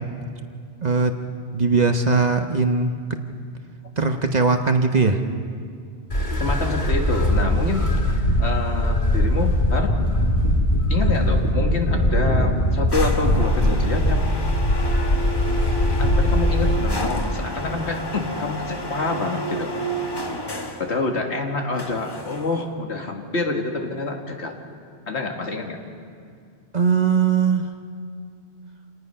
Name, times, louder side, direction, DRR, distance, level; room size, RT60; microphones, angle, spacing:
voice 1, 0.8-1.1 1.5-2.9 4.0-5.2 13.6-13.9 26.7-27.7, right 4 dB, 40° right, 6 dB, 1.0 m, -20 dB
sound 1, 6.1-16.8, left 1 dB, 40° left, 2.2 m, -21 dB
voice 2, 6.4-7.9 8.4-10.0 10.9-14.3 16.0-19.7 20.7-24.6 25.1-25.8, left 3 dB, 70° left, 2 dB, 2.1 m, -27 dB
sound 2, 12.9-20.9 21.8-22.7, equal, 20° left, 1.2 m, -30 dB
27.5 x 19.0 x 5.6 m, 2.2 s
omnidirectional pair, 1.2 m